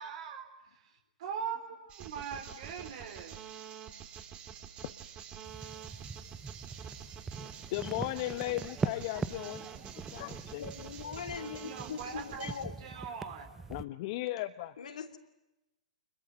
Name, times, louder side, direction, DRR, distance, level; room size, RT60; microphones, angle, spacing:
voice 1, 0.0-3.4 11.4-12.5 12.8-13.5, right 7 dB, 55° right, 4 dB, 4.1 m, -41 dB
sound 1, 1.9-12.6, right 8 dB, 30° right, 3.5 m, -47 dB
sound 2, 5.4-13.8, right 4 dB, 10° right, 0.9 m, -42 dB
voice 2, 7.7-9.7 9.9-10.6 13.7-14.7, left 16 dB, 45° left, 10 dB, 1.0 m, -36 dB
voice 3, 10.6-12.7 14.8-15.2, left 7 dB, 70° left, 6 dB, 3.1 m, -41 dB
26.5 x 22.0 x 9.3 m, 0.98 s
hypercardioid pair, 120°, 4 cm